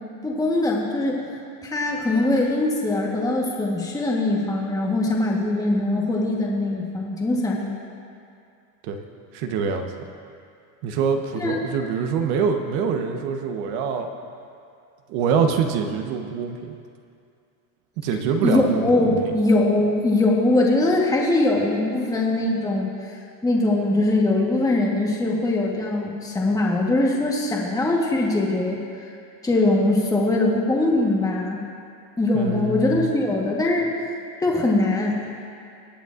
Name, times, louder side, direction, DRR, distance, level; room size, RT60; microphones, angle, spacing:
voice 1, 0.2-1.3 1.6-7.7 11.4-11.5 18.4-23.1 23.4-28.8 29.4-31.6 32.2-34.1 34.4-35.2, left 2 dB, 5° left, -2 dB, 1.2 m, -22 dB
voice 2, 9.3-10.1 10.8-14.1 15.1-16.8 18.0-19.3 32.3-33.1, right 6 dB, 65° right, 5 dB, 1.1 m, -25 dB
21.0 x 8.1 x 2.5 m, 2.4 s
supercardioid pair, 120°, 50 cm